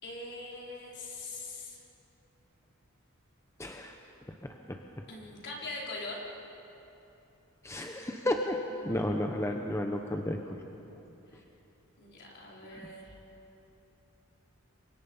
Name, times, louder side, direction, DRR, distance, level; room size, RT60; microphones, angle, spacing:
voice 1, 0.0-1.8 5.1-6.2 11.3-11.4 12.0-13.1, left 2 dB, 55° left, -3 dB, 4.8 m, -42 dB
voice 2, 3.6-3.9 4.4-4.8 7.6-10.6 12.7-12.9, left 1 dB, 15° left, 3 dB, 0.9 m, -33 dB
28.5 x 24.0 x 5.6 m, 3.0 s
head